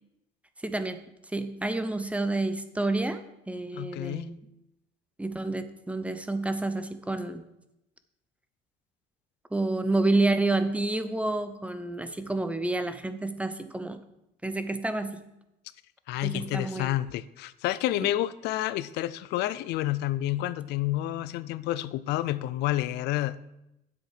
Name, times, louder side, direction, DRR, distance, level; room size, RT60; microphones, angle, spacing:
voice 1, 0.6-1.0 1.3-4.4 5.2-7.4 9.5-14.0 14.4-15.2 16.2-16.9 18.0-18.1, right 2 dB, 10° right, 10 dB, 0.8 m, -29 dB
voice 2, 3.7-4.3 16.1-23.4, left 14 dB, 85° left, 16 dB, 0.4 m, -29 dB
9.4 x 7.7 x 4.9 m, 0.87 s
cardioid pair, 110°, 17 cm